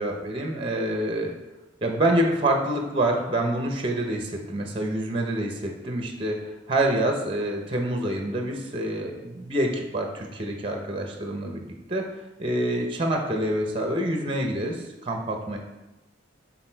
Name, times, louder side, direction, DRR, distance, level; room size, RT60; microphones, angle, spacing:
voice 1, 0.0-1.3 1.8-12.0 12.4-15.6, right 1 dB, 30° right, 3 dB, 0.7 m, -27 dB
6.4 x 4.0 x 4.5 m, 1.1 s
head